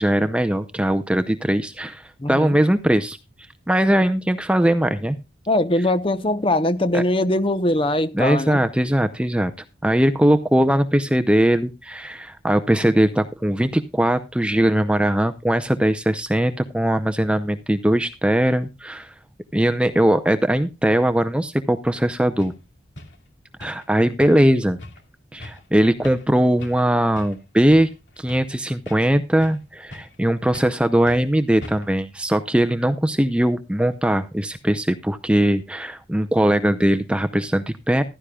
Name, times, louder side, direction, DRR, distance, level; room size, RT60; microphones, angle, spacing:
voice 1, 0.0-3.2 3.7-5.2 6.9-7.0 8.1-9.5 9.8-19.1 19.5-22.5 23.6-24.8 25.3-27.9 28.2-38.0, right 1 dB, 5° right, 0.5 m, -20 dB
voice 2, 2.2-2.6 5.5-8.6, left 1 dB, 30° left, 0.8 m, -21 dB
sound 1, 21.9-22.0 22.4-22.6 23.0-23.2 23.6-23.9 24.2-24.5 24.8-25.0 25.4-25.7 26.0-26.3 26.6-26.9 27.2-27.4 27.7-28.5 28.9-29.6 29.9-30.2 30.5-30.8 31.1-31.3 31.6-32.0, left 1 dB, 85° left, 2.3 m, -40 dB
15.0 x 12.5 x 2.3 m
head